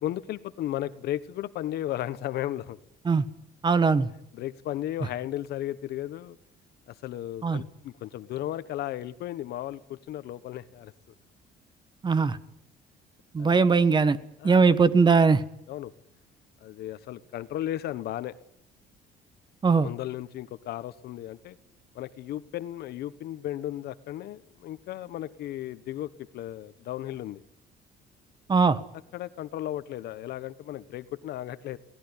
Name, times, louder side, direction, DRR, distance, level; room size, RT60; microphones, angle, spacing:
voice 1, 0.0-2.8 4.3-6.4 6.9-10.9 13.4-13.6 14.4-14.8 15.7-15.9 16.6-18.3 19.8-21.6 21.9-27.4 29.1-31.8, left 13 dB, 70° left, 14 dB, 1.2 m, -35 dB
voice 2, 3.6-4.1 7.4-7.6 12.0-12.4 13.3-14.2 14.4-15.4 19.6-19.9 28.5-28.8, right 4 dB, 25° right, 14 dB, 1.4 m, -20 dB
21.5 x 18.0 x 9.9 m, 0.77 s
cardioid pair, 110°, 17 cm